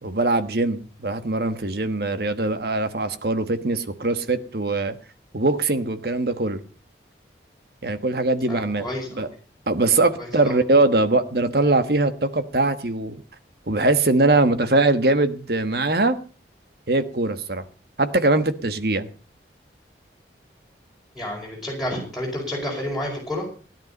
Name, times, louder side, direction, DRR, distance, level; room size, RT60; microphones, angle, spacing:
voice 1, 0.0-4.9 5.3-6.6 7.8-8.9 9.1-9.3 9.7-13.2 13.7-16.2 16.9-17.6 18.0-19.1, right 2 dB, 60° right, 10 dB, 1.3 m, -22 dB
voice 2, 8.5-9.3 10.4-10.6 21.1-23.5, left 1 dB, ahead, -2 dB, 5.0 m, -30 dB
16.5 x 10.5 x 5.3 m, 0.38 s
head